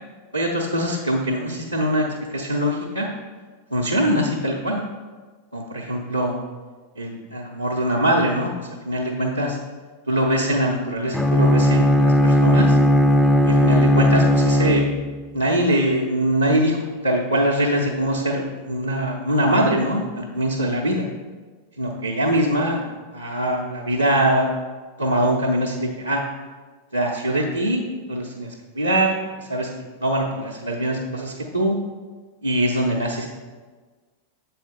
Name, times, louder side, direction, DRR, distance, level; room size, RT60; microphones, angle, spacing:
voice 1, 0.3-2.1 2.3-3.1 3.7-4.8 5.5-6.4 7.0-9.6 10.1-12.8 13.4-14.9 15.3-21.1 21.8-22.8 23.1-24.5 25.0-26.2 26.9-27.8 28.1-29.7 30.0-31.8 32.4-33.3, right 1 dB, 85° right, -5 dB, 0.7 m, -22 dB
Bowed string instrument, 11.1-15.3, left 1 dB, 5° left, 0.4 m, -17 dB
7.3 x 4.2 x 4.1 m, 1.4 s
figure-of-eight pair, 90°, 0 cm